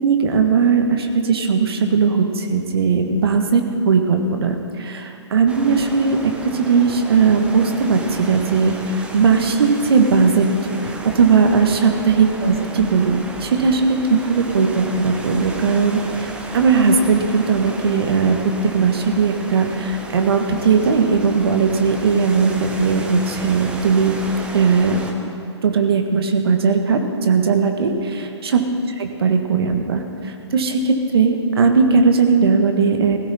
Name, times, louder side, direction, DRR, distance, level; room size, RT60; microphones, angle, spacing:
voice 1, 0.0-10.5 10.8-24.2 24.5-25.0 25.6-28.6 29.0-33.2, right 5 dB, 55° right, 5 dB, 1.5 m, -18 dB
sound 1, 5.5-25.1, right 2 dB, 5° right, 1.0 m, -34 dB
16.5 x 15.5 x 4.3 m, 2.6 s
figure-of-eight pair, 130°, 15 cm